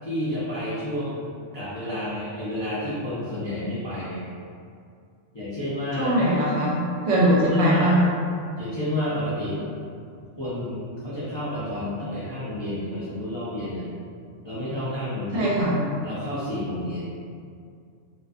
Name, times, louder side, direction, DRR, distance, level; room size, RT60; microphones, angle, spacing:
voice 1, 0.0-1.3 1.5-4.3 5.3-6.2 7.5-7.9 8.6-9.6 10.4-13.9 14.4-15.5 16.0-17.0, left 1 dB, 40° left, -13 dB, 0.4 m, -30 dB
voice 2, 5.9-8.0 15.3-15.8, right 1 dB, 70° right, -6 dB, 0.8 m, -21 dB
2.5 x 2.4 x 2.4 m, 2.3 s
omnidirectional pair, 1.3 m